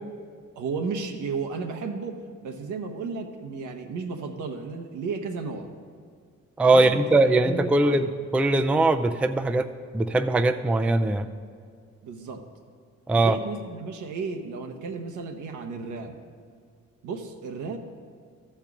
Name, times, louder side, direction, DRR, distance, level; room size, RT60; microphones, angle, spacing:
voice 1, 0.5-5.7 6.6-7.1 7.4-8.1 12.0-12.5 13.1-16.1 17.0-17.8, right 4 dB, 80° right, 5 dB, 1.0 m, -33 dB
voice 2, 6.6-8.1 8.3-9.7 9.9-11.3 13.1-13.4, right 2 dB, 5° right, 8 dB, 0.3 m, -21 dB
13.5 x 4.5 x 5.9 m, 2.1 s
cardioid pair, 90°, 30 cm